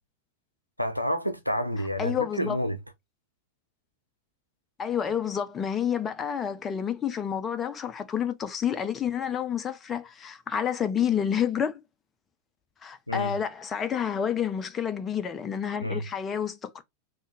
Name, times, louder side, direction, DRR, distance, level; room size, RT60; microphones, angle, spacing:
voice 1, 0.8-2.8 13.1-13.3 15.8-16.0, equal, 90° left, 0.5 m, -29 dB
voice 2, 2.0-2.6 4.8-11.8 12.8-16.8, left 8 dB, 20° left, 0.5 m, -29 dB
3.6 x 2.6 x 3.8 m
figure-of-eight pair, 90°, 0 cm